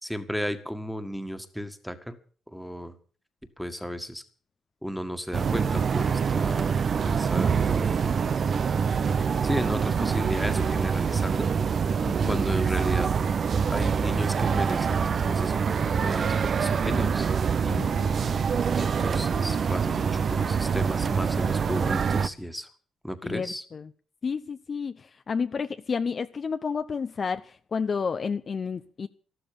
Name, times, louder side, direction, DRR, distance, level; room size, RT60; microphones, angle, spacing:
voice 1, 0.0-2.2 2.5-2.9 3.6-4.2 4.8-8.3 9.2-11.5 12.2-13.1 13.7-17.3 17.6-18.0 18.8-22.7 23.0-23.6, equal, ahead, 1.9 m, -34 dB
sound 1, 5.3-22.3, right 6 dB, 50° right, 0.8 m, -25 dB
voice 2, 12.0-12.4 17.7-18.4 23.2-23.9 24.2-29.1, left 5 dB, 40° left, 0.7 m, -31 dB
13.0 x 12.5 x 7.0 m
cardioid pair, 90°, 0 cm